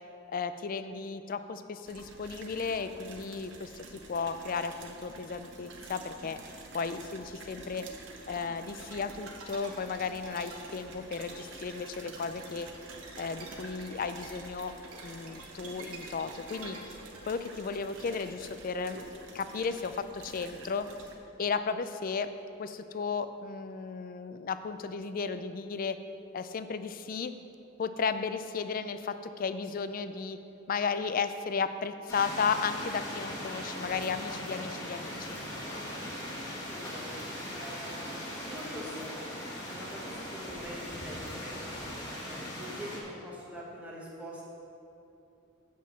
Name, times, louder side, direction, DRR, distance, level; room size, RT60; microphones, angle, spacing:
voice 1, 0.3-7.9 8.3-12.7 13.2-14.7 15.0-16.8 17.2-19.0 19.3-20.9 21.4-22.3 22.6-26.0 26.3-27.3 27.8-30.4 30.7-35.4, left 5 dB, 40° left, 11 dB, 0.4 m, -34 dB
sound 1, 1.9-21.2, right 3 dB, 55° right, 0.9 m, -49 dB
sound 2, 8.4-18.9, right 2 dB, 80° right, 1.3 m, -50 dB
sound 3, 32.1-43.0, left 1 dB, 15° left, 1.7 m, -39 dB
voice 2, 36.6-37.1 37.5-39.1 39.7-41.6 42.2-44.4, equal, 5° right, -4 dB, 1.4 m, -44 dB
7.5 x 5.6 x 7.3 m, 2.8 s
head